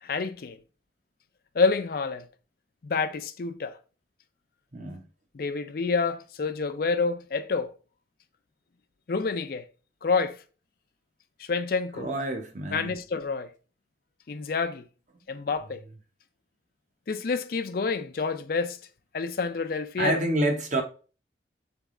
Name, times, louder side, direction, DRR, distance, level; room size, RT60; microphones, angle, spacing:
voice 1, 0.0-0.6 1.5-2.2 2.8-3.7 5.3-7.7 9.1-9.6 10.0-10.4 11.4-12.1 12.7-13.5 14.3-14.8 15.3-15.8 17.1-18.8 19.1-20.2, left 4 dB, 55° left, 0.4 m, -28 dB
voice 2, 4.7-5.0 11.9-12.9 20.0-20.8, right 1 dB, 45° right, 0.9 m, -28 dB
4.0 x 3.4 x 3.7 m
head